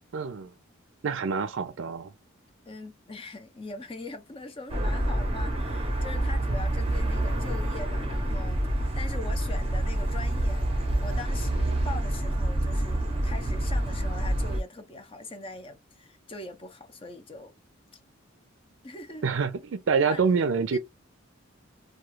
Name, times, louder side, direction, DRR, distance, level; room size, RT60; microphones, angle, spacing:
voice 1, 0.1-0.5 1.0-2.1 19.2-20.8, right 5 dB, 70° right, 0.4 m, -26 dB
voice 2, 2.7-17.5 18.8-19.3 20.1-20.8, left 2 dB, 25° left, 0.5 m, -42 dB
sound 1, 4.7-14.6, right 1 dB, 25° right, 0.6 m, -27 dB
2.3 x 2.3 x 3.1 m
head